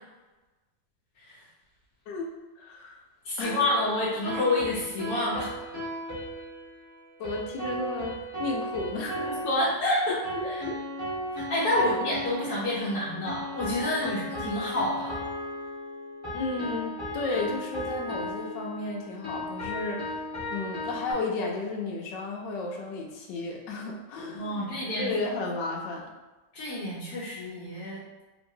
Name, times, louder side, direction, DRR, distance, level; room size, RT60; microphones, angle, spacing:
voice 1, 2.1-3.0 3.4-3.6 7.2-9.3 10.4-10.7 11.8-12.0 14.0-14.1 16.3-20.1 20.5-24.7 25.0-26.1, left 3 dB, 90° left, 0 dB, 1.3 m, -33 dB
voice 2, 3.2-5.5 9.2-10.6 11.3-15.2 24.3-25.1 26.5-28.2, left 1 dB, 65° left, -9 dB, 1.1 m, -29 dB
sound 1, 3.4-21.1, equal, 10° left, 1.0 m, -36 dB
3.2 x 2.8 x 2.6 m, 1.1 s
omnidirectional pair, 1.9 m